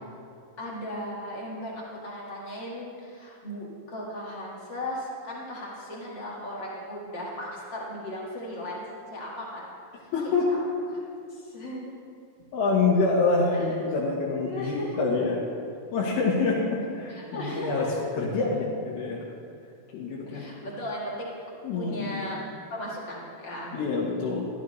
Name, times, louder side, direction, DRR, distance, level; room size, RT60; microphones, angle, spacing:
voice 1, 0.6-8.8 9.1-9.7 10.0-10.1 10.9-11.0 11.3-11.9 14.3-15.1 17.1-18.2 20.3-21.3 21.7-22.4 22.7-23.8, equal, 45° left, -4 dB, 1.6 m, -36 dB
voice 2, 10.1-10.5 12.5-15.4 15.9-19.2 19.9-20.5 21.6-22.2 23.7-24.5, left 3 dB, 75° left, -6 dB, 3.1 m, -26 dB
14.0 x 12.0 x 3.2 m, 2.4 s
omnidirectional pair, 4.5 m